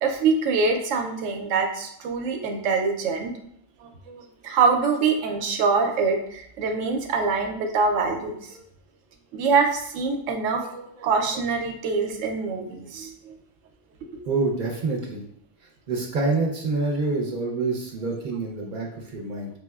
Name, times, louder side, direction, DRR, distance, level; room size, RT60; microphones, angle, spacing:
voice 1, 0.0-3.3 3.8-8.6 9.3-13.3, right 4 dB, 85° right, 4 dB, 0.9 m, -24 dB
voice 2, 14.2-15.3 15.9-19.5, right 3 dB, 50° right, -1 dB, 0.6 m, -26 dB
4.7 x 2.0 x 2.2 m, 0.73 s
omnidirectional pair, 1.3 m